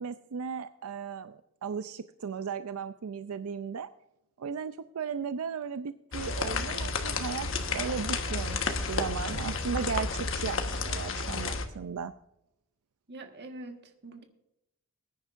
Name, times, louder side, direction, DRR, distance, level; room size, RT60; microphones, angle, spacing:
voice 1, 0.0-3.9 4.4-7.5 7.7-12.1, right 6 dB, 85° right, 11 dB, 0.4 m, -36 dB
sound 1, 6.1-11.7, left 3 dB, 60° left, 1.3 m, -32 dB
voice 2, 13.1-14.2, right 2 dB, 50° right, 5 dB, 1.5 m, -44 dB
20.5 x 10.0 x 2.5 m, 0.85 s
head